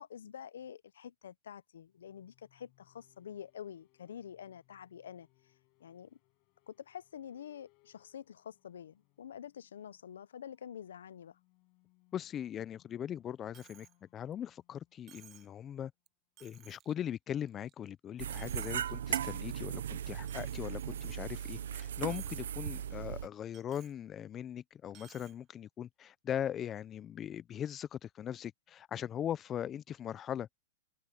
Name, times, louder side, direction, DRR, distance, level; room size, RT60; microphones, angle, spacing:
voice 1, 0.0-5.3 5.8-6.2 6.7-11.4, left 9 dB, 90° left, 0.6 m, -47 dB
sound 1, 1.9-16.5, left 29 dB, 40° left, 5.5 m, -73 dB
voice 2, 12.1-15.9 16.4-30.5, left 10 dB, 20° left, 0.5 m, -40 dB
Coin (dropping), 13.5-14.0 14.3-14.4 15.1-15.5 16.1-16.2 16.4-16.9 17.4-17.9 18.2-18.9 19.3-19.5 20.3-21.5 21.8-22.4 22.7-22.8 23.5-24.0 24.9-25.4, right 12 dB, 25° right, 0.8 m, -59 dB
sound 2, 18.2-23.3, right 9 dB, 80° right, 0.6 m, -37 dB
hypercardioid pair, 145°, 0 cm